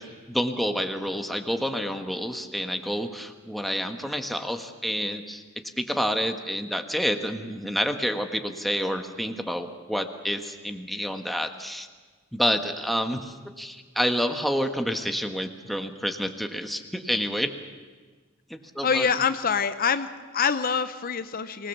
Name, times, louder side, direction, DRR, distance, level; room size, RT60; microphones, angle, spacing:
voice 1, 0.0-5.4 5.8-11.9 12.3-17.5 18.5-19.1, equal, ahead, 5 dB, 1.3 m, -28 dB
voice 2, 18.8-21.7, left 6 dB, 45° left, 11 dB, 0.7 m, -25 dB
25.0 x 19.5 x 7.2 m, 1.4 s
head